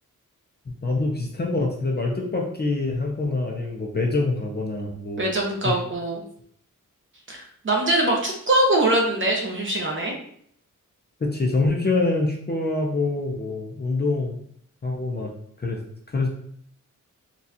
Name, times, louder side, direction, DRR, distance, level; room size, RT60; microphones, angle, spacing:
voice 1, 0.7-5.3 5.6-5.8 11.2-14.4 14.8-15.3 15.6-15.8 16.1-16.3, left 3 dB, 30° left, 0 dB, 0.5 m, -25 dB
voice 2, 5.2-6.2 7.3-10.2, right 1 dB, 35° right, -1 dB, 0.8 m, -23 dB
4.0 x 2.3 x 2.7 m, 0.63 s
wide cardioid pair, 150°, 33 cm